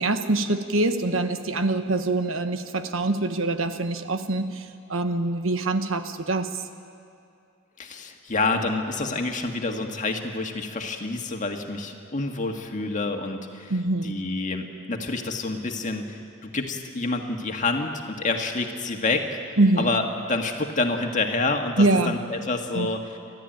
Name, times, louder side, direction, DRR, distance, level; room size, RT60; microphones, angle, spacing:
voice 1, 0.0-6.6 13.7-14.1 19.6-19.9 21.8-22.2 22.7-22.9, right 2 dB, 80° right, 8 dB, 1.3 m, -24 dB
voice 2, 7.8-13.7 14.0-19.4 19.8-23.2, left 3 dB, 40° left, 3 dB, 1.8 m, -28 dB
30.0 x 13.0 x 9.2 m, 2.5 s
head